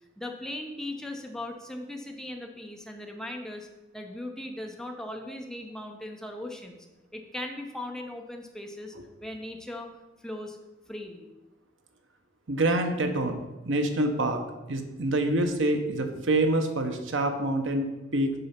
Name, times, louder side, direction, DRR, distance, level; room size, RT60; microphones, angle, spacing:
voice 1, 0.2-3.7 3.9-6.8 7.1-8.9 9.2-9.9 10.2-10.6 10.9-11.3, left 1 dB, 5° left, 3 dB, 0.8 m, -38 dB
voice 2, 12.5-14.4 14.7-18.3, right 1 dB, 75° right, 6 dB, 0.9 m, -26 dB
6.8 x 5.5 x 5.8 m, 1.1 s
head